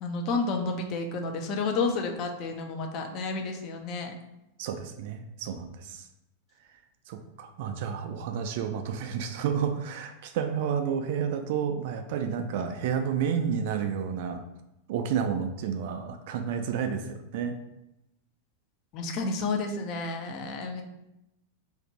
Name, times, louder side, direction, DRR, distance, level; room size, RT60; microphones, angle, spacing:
voice 1, 0.0-4.1 18.9-20.8, left 3 dB, 40° left, 3 dB, 0.5 m, -31 dB
voice 2, 4.6-6.1 7.1-14.4 14.9-17.5, right 7 dB, 50° right, 6 dB, 0.3 m, -30 dB
2.5 x 2.5 x 4.1 m, 0.88 s
figure-of-eight pair, 90°, 0 cm